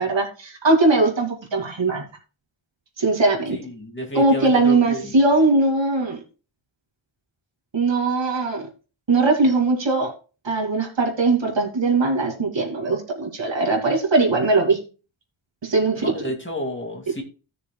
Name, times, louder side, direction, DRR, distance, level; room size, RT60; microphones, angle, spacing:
voice 1, 0.0-2.0 3.0-3.6 4.1-6.2 7.7-8.7 9.1-10.1 10.4-14.8 15.6-16.1, right 3 dB, 65° right, 1 dB, 2.5 m, -20 dB
voice 2, 3.5-5.2 16.0-17.2, equal, 25° left, 2 dB, 2.3 m, -31 dB
16.5 x 6.7 x 2.3 m, 0.34 s
wide cardioid pair, 100°, 47 cm